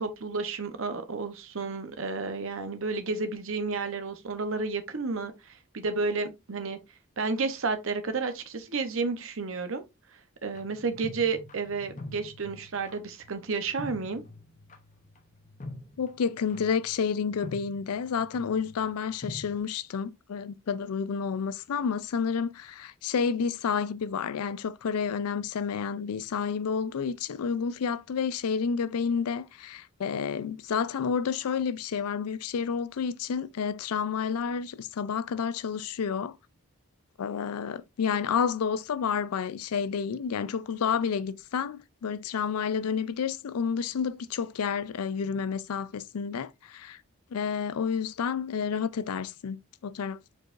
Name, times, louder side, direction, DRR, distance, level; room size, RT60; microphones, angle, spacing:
voice 1, 0.0-6.8 7.2-9.8 10.4-14.2, right 4 dB, 65° right, 0.8 m, -31 dB
sound 1, 10.5-19.6, left 2 dB, 35° left, 0.7 m, -45 dB
voice 2, 16.0-36.4 37.2-47.0 47.3-50.2, left 6 dB, 90° left, 0.4 m, -30 dB
4.7 x 4.6 x 2.5 m
head